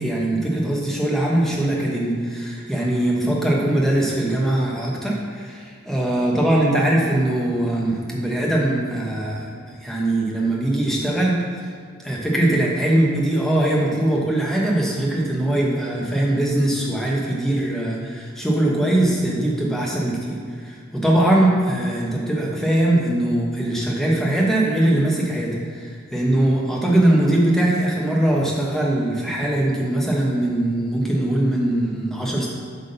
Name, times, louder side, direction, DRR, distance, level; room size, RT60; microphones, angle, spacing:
voice 1, 0.0-11.6 12.0-32.5, right 1 dB, ahead, -4 dB, 1.0 m, -21 dB
7.8 x 3.6 x 5.5 m, 2.1 s
head